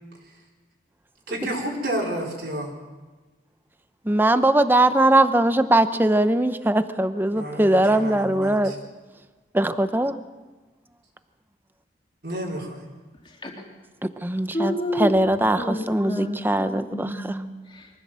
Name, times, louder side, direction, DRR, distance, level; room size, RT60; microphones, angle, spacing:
voice 1, 1.3-2.7 7.3-8.8 12.2-12.8, right 1 dB, 65° right, 4.2 m, -30 dB
voice 2, 4.1-8.7 9.5-10.1 14.0-17.1, right 1 dB, 10° right, 0.7 m, -20 dB
voice 3, 13.2-13.5 14.5-17.9, left 1 dB, 30° left, 3.2 m, -30 dB
23.5 x 15.5 x 7.5 m
head